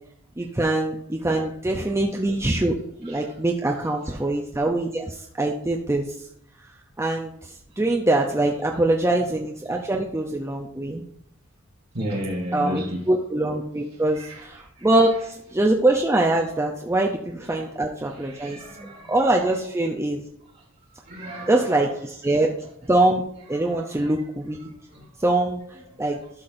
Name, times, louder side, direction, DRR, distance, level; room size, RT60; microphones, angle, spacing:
voice 1, 0.4-2.8 3.0-6.1 7.0-11.0 12.5-18.6 19.1-20.2 21.5-22.5 22.9-24.6 25.2-25.6 26.0-26.2, right 2 dB, 10° right, 0.5 m, -23 dB
voice 2, 1.8-2.3 3.0-4.3 8.2-8.7 9.1-9.4 11.9-13.1 13.9-15.3 16.3-16.5 17.4-17.6 18.0-19.6 20.5-20.6 21.1-22.9 23.4-24.3 24.6-25.1 25.5-25.8 26.2-26.3, equal, 45° right, 1.5 m, -37 dB
12.5 x 5.8 x 2.6 m
head